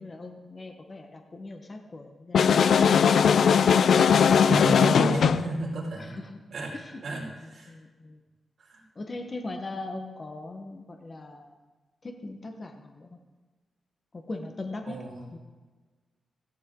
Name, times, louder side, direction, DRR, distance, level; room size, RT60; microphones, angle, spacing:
voice 1, 0.0-3.0 6.0-6.4 6.7-8.2 8.9-11.6 12.0-13.2 14.1-15.0 15.3-15.4, left 2 dB, 30° left, 4 dB, 1.3 m, -40 dB
sound 1, 2.3-5.5, left 7 dB, 70° left, 0.5 m, -19 dB
voice 2, 4.5-6.2 6.5-6.7 7.0-7.2 7.5-7.7 8.6-8.8 14.9-15.2, right 2 dB, 55° right, -4 dB, 5.2 m, -31 dB
17.0 x 15.0 x 3.9 m, 1.3 s
wide cardioid pair, 145°, 0 cm